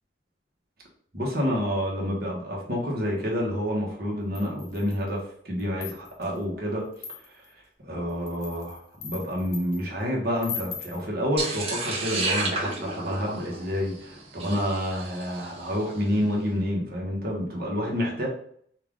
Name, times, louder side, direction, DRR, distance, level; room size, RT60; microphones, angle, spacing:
voice 1, 1.1-6.8 7.8-18.3, equal, 55° right, -2 dB, 1.4 m, -28 dB
sound 1, 4.3-5.1 5.6-6.3 6.9-7.5 8.1-9.8 10.4-11.0, left 6 dB, 35° left, 0.8 m, -39 dB
sound 2, 11.4-15.7, right 3 dB, 30° right, 1.2 m, -31 dB
5.5 x 2.5 x 3.7 m, 0.63 s
head